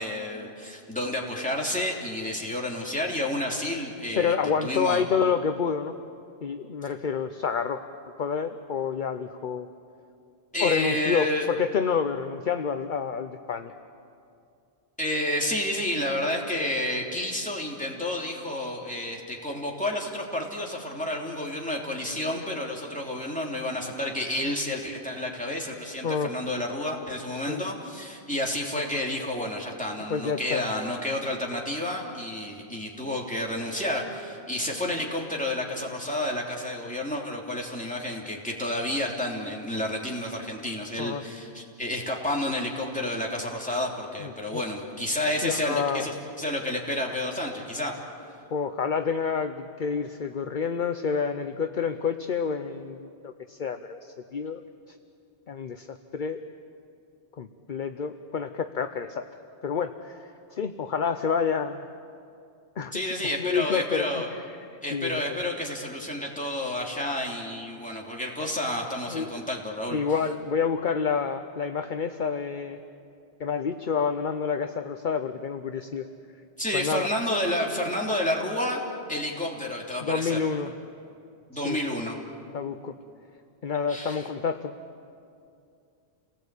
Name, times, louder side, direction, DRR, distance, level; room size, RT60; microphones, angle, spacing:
voice 1, 0.0-4.3 4.6-5.0 10.5-11.5 15.0-47.9 62.9-64.3 64.8-70.0 76.6-78.8 79.1-80.4 81.5-82.2 83.9-84.2, left 1 dB, 5° left, -2 dB, 3.1 m, -30 dB
voice 2, 4.2-5.9 6.4-7.8 8.2-9.7 10.6-13.7 26.0-26.3 27.5-27.7 30.1-30.7 41.0-41.2 44.2-44.6 45.4-46.1 48.5-54.6 54.9-55.0 55.5-56.4 57.4-59.3 59.6-61.9 62.8-63.0 63.4-65.4 69.1-69.4 69.9-72.8 73.4-76.0 76.7-77.1 80.0-80.7 81.5-81.8 82.5-83.0 83.6-84.7, left 6 dB, 50° left, 8 dB, 0.9 m, -28 dB
29.5 x 19.0 x 8.4 m, 2.5 s
omnidirectional pair, 1.1 m